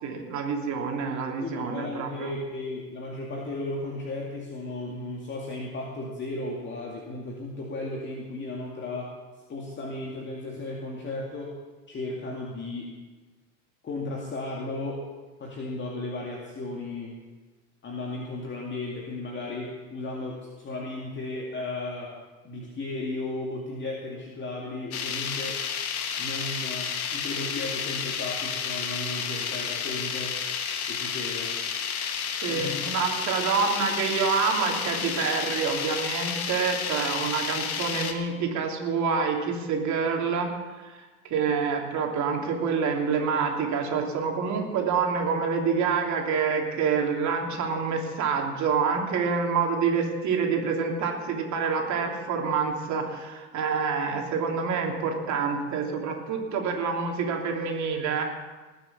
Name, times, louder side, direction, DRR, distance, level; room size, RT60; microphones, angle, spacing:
voice 1, 0.0-2.3 32.4-40.5 40.8-58.2, right 5 dB, 40° right, 1 dB, 3.1 m, -27 dB
voice 2, 1.4-9.1 9.5-11.6 11.9-12.9 13.8-15.0 15.4-17.1 17.8-22.1 22.4-25.6 26.2-30.4 30.9-31.5 32.5-33.0, left 2 dB, 25° left, -2 dB, 2.2 m, -35 dB
sound 1, 24.9-38.1, left 7 dB, 80° left, 1.5 m, -31 dB
19.5 x 7.0 x 7.2 m, 1.3 s
hypercardioid pair, 85°, 43 cm